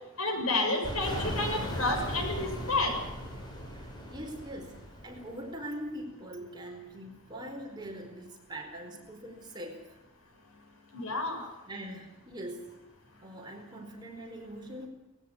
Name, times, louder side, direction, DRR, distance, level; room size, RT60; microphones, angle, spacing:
voice 1, 0.2-2.9 10.9-11.5, left 2 dB, 90° left, 3 dB, 7.4 m, -30 dB
sound 1, 0.8-5.5, equal, 20° left, 6.1 m, -38 dB
voice 2, 3.7-9.8 11.7-12.8 13.2-14.9, right 1 dB, 20° right, 2 dB, 4.6 m, -42 dB
20.0 x 16.5 x 9.9 m, 0.93 s
head